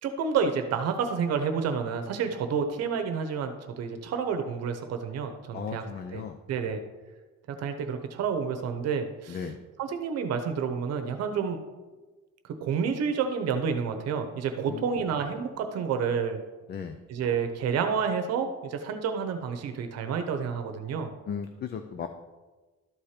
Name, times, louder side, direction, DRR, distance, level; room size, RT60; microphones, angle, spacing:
voice 1, 0.0-5.8 6.1-6.2 6.5-6.8 7.5-9.5 9.8-11.6 12.4-16.4 17.1-21.1, right 6 dB, 60° right, 6 dB, 0.9 m, -29 dB
voice 2, 5.5-6.4 9.3-9.6 14.7-14.9 16.7-17.0 21.3-22.1, left 7 dB, 35° left, 8 dB, 0.5 m, -36 dB
12.5 x 4.4 x 4.9 m, 1.3 s
cardioid pair, 150°, 30 cm